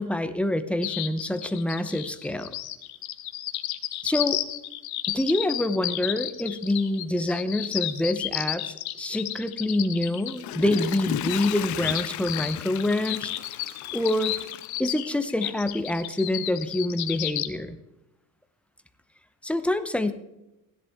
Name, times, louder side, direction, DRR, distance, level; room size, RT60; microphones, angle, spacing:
voice 1, 0.0-2.5 4.0-4.4 5.1-13.3 13.9-14.4 14.8-17.8 19.4-20.1, left 1 dB, 5° left, 9 dB, 0.7 m, -26 dB
sound 1, 0.8-17.5, left 14 dB, 80° left, 1.0 m, -32 dB
Water / Toilet flush, 10.1-15.4 15.9-16.0, left 15 dB, 55° left, 0.5 m, -35 dB
16.5 x 11.0 x 3.6 m, 0.93 s
cardioid pair, 130°, 37 cm